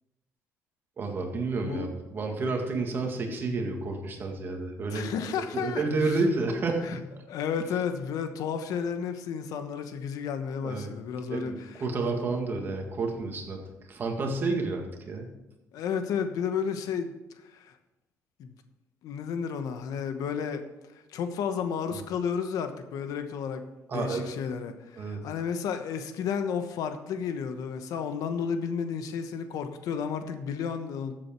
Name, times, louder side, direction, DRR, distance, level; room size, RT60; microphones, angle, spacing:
voice 1, 1.0-5.1 5.5-7.0 10.6-10.9 11.3-13.6 13.9-15.3 21.9-22.0 23.9-24.3 25.0-25.2, right 3 dB, 35° right, 2 dB, 1.9 m, -30 dB
voice 2, 4.9-6.2 6.8-7.0 7.3-11.8 15.7-17.1 17.5-17.7 18.4-18.5 19.0-20.6 21.1-23.6 23.9-31.1, left 7 dB, 80° left, 8 dB, 1.1 m, -32 dB
13.5 x 7.6 x 4.5 m, 1.0 s
cardioid pair, 155°, 6 cm